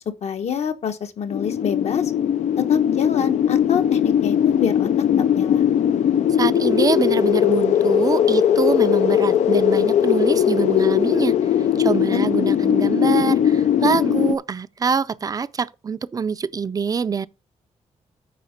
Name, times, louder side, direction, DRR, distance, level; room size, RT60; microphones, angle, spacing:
voice 1, 0.2-2.1 2.6-4.9 5.3-5.6 12.1-12.2, left 8 dB, 65° left, 1.0 m, -26 dB
sound 1, 1.3-14.3, left 9 dB, 85° left, 0.5 m, -19 dB
voice 2, 6.4-11.4 11.8-17.3, right 5 dB, 30° right, 0.4 m, -24 dB
9.3 x 3.7 x 6.5 m
wide cardioid pair, 140°, 12 cm